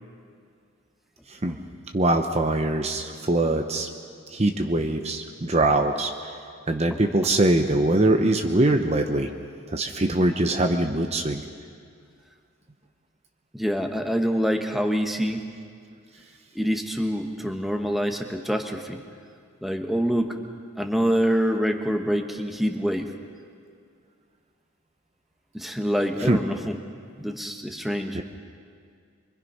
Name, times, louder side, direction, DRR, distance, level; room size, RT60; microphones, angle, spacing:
voice 1, 1.9-3.9 4.3-6.3 6.7-9.3 9.7-11.4 26.3-26.4 28.1-28.2, right 2 dB, 30° right, 5 dB, 0.8 m, -22 dB
voice 2, 13.5-15.4 16.5-19.0 19.6-20.4 20.8-23.1 25.5-26.8 27.2-28.2, equal, ahead, 4 dB, 1.1 m, -26 dB
24.5 x 24.0 x 5.6 m, 2.2 s
head